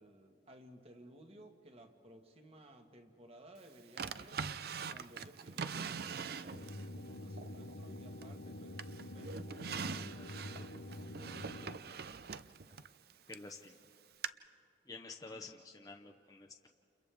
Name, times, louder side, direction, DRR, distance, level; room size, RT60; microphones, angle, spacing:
voice 1, 0.0-4.5 4.9-8.9 9.1-11.6 15.3-15.5, right 1 dB, 35° right, 4 dB, 1.5 m, -58 dB
Drawer open or close, 4.0-6.9 7.4-8.4 8.8-13.5 14.2-14.3, right 6 dB, 55° right, 0.5 m, -43 dB
sound 1, 6.5-11.8, left 1 dB, 80° left, 1.0 m, -47 dB
voice 2, 13.3-13.8 14.9-16.7, left 3 dB, 20° left, 2 dB, 0.7 m, -50 dB
29.5 x 29.5 x 3.5 m, 2.5 s
head